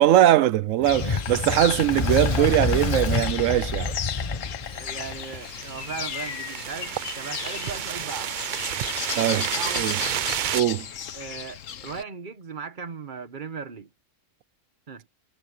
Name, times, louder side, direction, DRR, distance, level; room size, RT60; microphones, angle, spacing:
voice 1, 0.0-3.9 9.2-9.4 9.8-10.0 10.5-10.9, right 12 dB, 85° right, 1.0 m, -21 dB
Insect, 0.8-12.0, left 9 dB, 85° left, 1.3 m, -34 dB
Fire, 0.8-5.4, left 4 dB, 25° left, 1.3 m, -28 dB
voice 2, 4.7-8.3 9.2-10.3 11.1-13.9 14.9-15.1, right 6 dB, 40° right, 1.4 m, -38 dB
sound 1, 4.8-10.6, right 10 dB, 65° right, 0.5 m, -31 dB
omnidirectional pair, 1.3 m